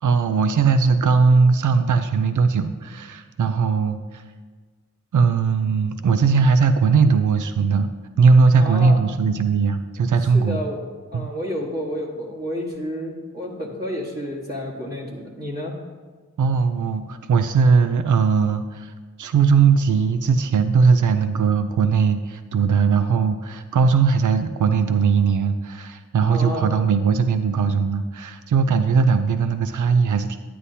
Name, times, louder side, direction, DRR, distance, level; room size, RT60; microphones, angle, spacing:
voice 1, 0.0-4.2 5.1-7.9 8.2-10.6 11.1-11.3 16.4-18.9 19.2-30.4, right 5 dB, 75° right, 9 dB, 0.5 m, -19 dB
voice 2, 8.6-9.0 10.3-10.8 11.1-15.7 26.3-26.7, equal, 30° right, -5 dB, 1.3 m, -30 dB
9.9 x 9.4 x 2.8 m, 1.4 s
wide cardioid pair, 95°, 30 cm